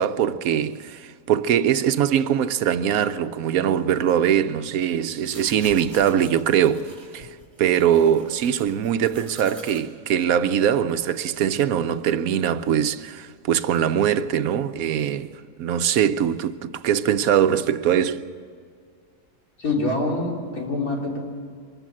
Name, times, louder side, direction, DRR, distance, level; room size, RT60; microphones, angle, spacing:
voice 1, 0.0-7.3 7.6-15.3 15.6-18.3, right 9 dB, 80° right, 1.1 m, -22 dB
sound 1, 5.2-9.8, right 2 dB, 35° right, 3.4 m, -46 dB
voice 2, 19.6-21.2, left 2 dB, 80° left, 3.6 m, -25 dB
24.0 x 14.0 x 8.6 m
omnidirectional pair, 1.5 m